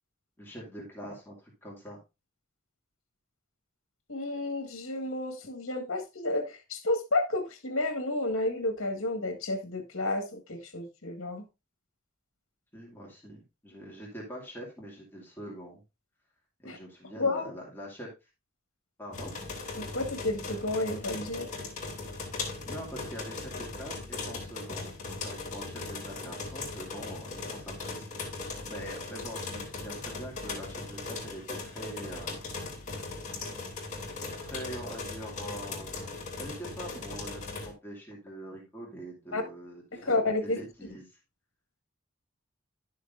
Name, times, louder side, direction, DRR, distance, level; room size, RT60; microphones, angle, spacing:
voice 1, 0.4-2.0 12.7-15.8 16.6-18.1 19.0-19.3 22.6-28.0 28.3-32.4 34.3-36.0 36.4-41.1, equal, 10° left, 2.4 m, -44 dB
voice 2, 4.1-11.4 16.7-16.8 17.2-17.5 19.8-21.5 39.3-39.4 39.9-40.6, left 2 dB, 75° left, 1.7 m, -31 dB
sound 1, 19.1-37.7, left 3 dB, 35° left, 2.7 m, -39 dB
11.0 x 6.5 x 2.6 m
head